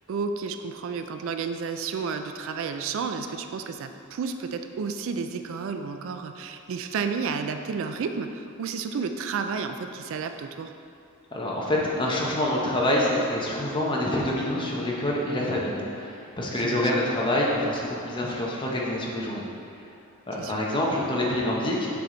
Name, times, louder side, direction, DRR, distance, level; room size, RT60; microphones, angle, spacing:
voice 1, 0.1-10.7 16.5-17.2 20.4-20.6, right 5 dB, 60° right, 8 dB, 0.3 m, -31 dB
voice 2, 11.3-19.4 20.3-21.9, left 1 dB, 20° left, -3 dB, 0.9 m, -26 dB
7.0 x 4.8 x 3.9 m, 2.6 s
head